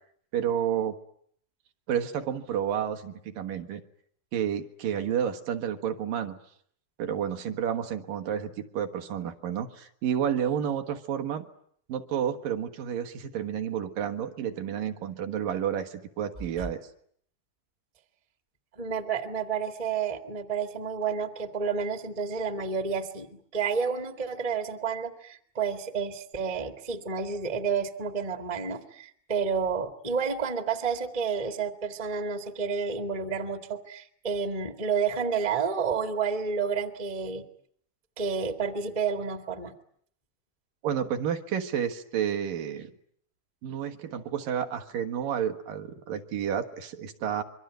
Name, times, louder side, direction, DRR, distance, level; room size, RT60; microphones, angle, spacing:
voice 1, 0.3-0.9 1.9-3.8 4.3-6.4 7.0-11.5 11.9-16.8 40.8-42.9 43.6-47.4, right 9 dB, 70° right, 7 dB, 3.0 m, -30 dB
voice 2, 18.8-37.4 38.2-39.7, right 5 dB, 20° right, 7 dB, 0.9 m, -30 dB
26.0 x 23.5 x 9.2 m, 0.65 s
omnidirectional pair, 4.3 m